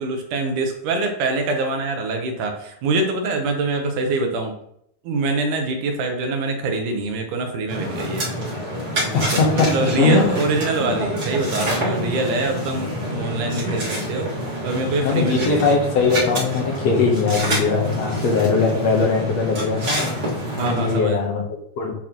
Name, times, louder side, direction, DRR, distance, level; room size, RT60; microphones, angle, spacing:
voice 1, 0.0-4.5 5.0-8.3 9.3-15.8 20.6-21.2, right 3 dB, 85° right, 4 dB, 2.5 m, -24 dB
sound 1, 7.7-21.0, equal, 40° right, 2.3 m, -27 dB
voice 2, 9.1-10.4 15.0-20.2 20.6-21.9, left 4 dB, 65° left, 1 dB, 2.0 m, -20 dB
8.7 x 4.3 x 2.9 m, 0.71 s
omnidirectional pair, 3.5 m